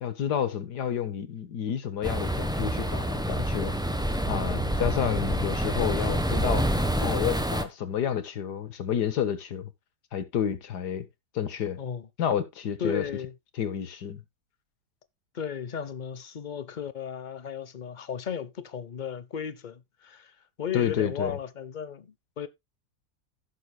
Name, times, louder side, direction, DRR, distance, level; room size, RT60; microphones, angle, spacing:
voice 1, 0.0-3.7 4.2-6.6 7.0-9.7 10.1-11.1 11.4-11.8 12.2-13.0 13.6-14.2 20.7-21.3, left 9 dB, 75° left, 1.8 m, -30 dB
sound 1, 2.0-7.6, equal, 5° right, 0.7 m, -27 dB
voice 2, 11.8-12.1 12.8-13.3 15.3-22.5, left 7 dB, 45° left, 0.6 m, -35 dB
16.0 x 6.7 x 2.2 m
omnidirectional pair, 1.8 m